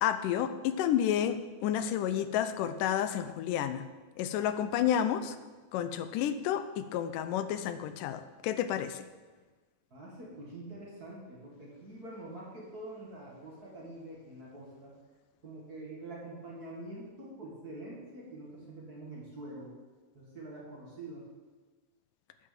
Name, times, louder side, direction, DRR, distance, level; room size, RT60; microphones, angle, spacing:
voice 1, 0.0-3.9 4.2-5.4 5.7-9.0, left 10 dB, 85° left, 11 dB, 2.2 m, -30 dB
voice 2, 9.9-14.9 15.4-19.7 20.1-21.2, right 1 dB, 35° right, -4 dB, 2.1 m, -45 dB
9.4 x 6.2 x 7.5 m, 1.3 s
omnidirectional pair, 3.7 m